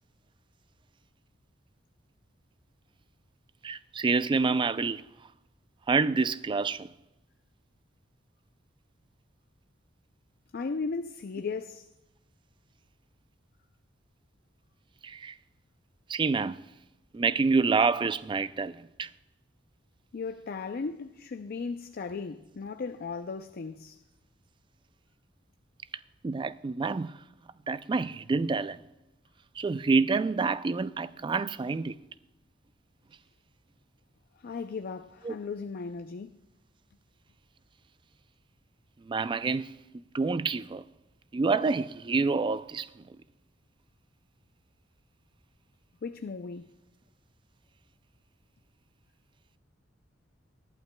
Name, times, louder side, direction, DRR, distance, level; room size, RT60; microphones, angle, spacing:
voice 1, 3.6-5.0 5.9-6.9 15.0-15.3 16.1-16.6 17.1-19.1 26.2-27.1 27.7-28.8 29.6-32.0 35.3-35.4 39.1-39.7 40.1-40.8 41.3-42.9, right 4 dB, 25° right, 0.3 m, -27 dB
voice 2, 10.5-11.9 20.1-24.0 34.4-36.4 46.0-46.7, left 4 dB, 50° left, 0.4 m, -36 dB
20.0 x 11.5 x 2.2 m
head